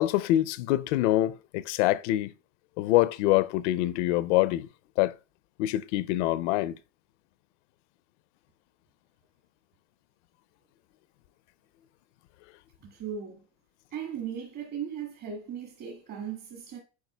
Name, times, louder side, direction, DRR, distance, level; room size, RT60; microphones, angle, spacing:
voice 1, 0.0-2.3 2.8-4.7 5.0-5.1 5.6-6.7, left 15 dB, 70° left, 0.5 m, -25 dB
voice 2, 12.8-13.4 13.9-16.8, right 8 dB, 45° right, 2.0 m, -37 dB
9.3 x 4.6 x 2.2 m
supercardioid pair, 115°, 37 cm